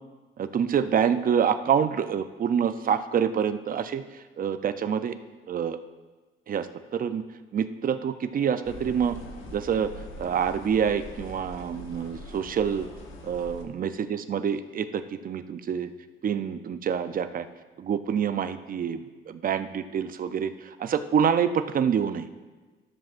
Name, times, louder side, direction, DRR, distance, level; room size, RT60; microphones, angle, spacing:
voice 1, 0.4-5.1 5.5-5.8 6.5-7.2 7.5-9.2 9.5-9.9 10.2-12.9 13.2-15.9 16.2-17.5 17.8-22.3, right 7 dB, 45° right, 11 dB, 0.5 m, -27 dB
sound 1, 8.6-13.6, left 2 dB, 80° left, 1.1 m, -43 dB
13.0 x 7.3 x 2.5 m, 1.3 s
cardioid pair, 90°, 20 cm